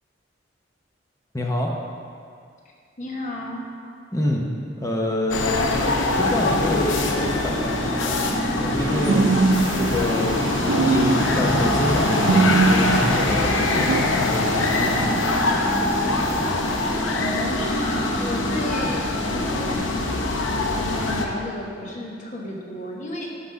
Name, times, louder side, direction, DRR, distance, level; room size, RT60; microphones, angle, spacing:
voice 1, 1.3-1.7 4.1-4.4 4.8-5.4 6.2-8.2 8.6-9.3 9.7-15.2, left 1 dB, 15° left, 0 dB, 0.7 m, -27 dB
voice 2, 3.0-3.7 17.1-23.3, left 1 dB, 40° left, -2 dB, 1.1 m, -32 dB
sound 1, 5.3-21.3, left 2 dB, 85° left, 0.7 m, -23 dB
sound 2, 6.1-19.8, right 1 dB, 20° right, 1.4 m, -30 dB
sound 3, 8.8-14.0, right 4 dB, 75° right, 0.4 m, -23 dB
5.8 x 5.7 x 6.3 m, 2.3 s
head